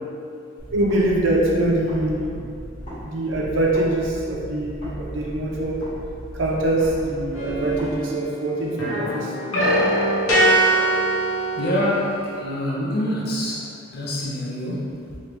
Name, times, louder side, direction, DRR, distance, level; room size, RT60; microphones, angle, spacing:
sound 1, 0.6-3.0 3.3-7.9, equal, 30° left, 1.1 m, -37 dB
voice 1, 0.7-2.4 3.0-5.8 6.3-9.3, right 1 dB, 65° right, -3 dB, 0.5 m, -23 dB
sound 2, 7.3-8.4 8.7-12.3, right 1 dB, 80° left, 0.7 m, -22 dB
voice 2, 11.6-15.2, left 1 dB, 45° left, -5 dB, 0.5 m, -26 dB
3.1 x 2.4 x 3.1 m, 2.5 s
head